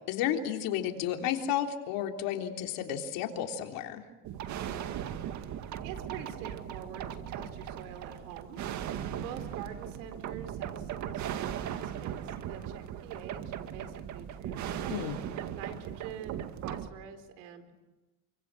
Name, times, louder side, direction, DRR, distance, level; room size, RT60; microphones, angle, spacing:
voice 1, 0.1-4.0 14.9-15.2, left 10 dB, 65° left, 4 dB, 3.6 m, -32 dB
sound 1, 4.2-16.9, right 9 dB, 50° right, 2.0 m, -38 dB
voice 2, 5.8-15.0 15.5-17.8, right 8 dB, 80° right, 7 dB, 4.3 m, -46 dB
28.0 x 24.5 x 7.7 m, 1.1 s
supercardioid pair, 120°, 37 cm